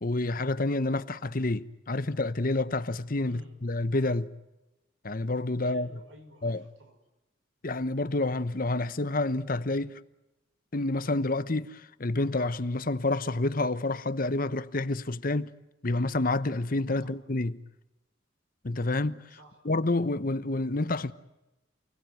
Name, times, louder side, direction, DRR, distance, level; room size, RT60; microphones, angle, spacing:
voice 1, 0.0-4.3 5.0-5.9 6.4-6.6 7.6-10.0 10.7-15.5 15.8-17.6 18.6-19.2 19.6-21.1, left 2 dB, 50° left, 1.0 m, -28 dB
voice 2, 3.3-3.6 5.6-7.0 16.9-17.1 19.3-19.6, equal, 85° right, 5.9 m, -54 dB
29.0 x 19.5 x 9.3 m
head